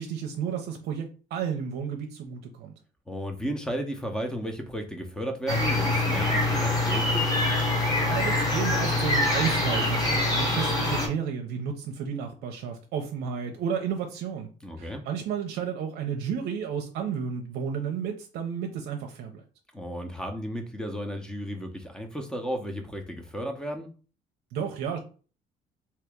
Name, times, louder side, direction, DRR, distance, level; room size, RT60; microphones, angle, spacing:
voice 1, 0.0-2.7 8.0-14.5 14.8-19.4 24.5-25.0, right 7 dB, 80° right, 0.6 m, -32 dB
voice 2, 3.1-7.2 14.6-15.1 19.7-23.9, equal, 5° left, 0.8 m, -34 dB
sound 1, 5.5-11.1, left 2 dB, 20° left, 1.2 m, -25 dB
2.9 x 2.8 x 3.5 m
cardioid pair, 110°, 17 cm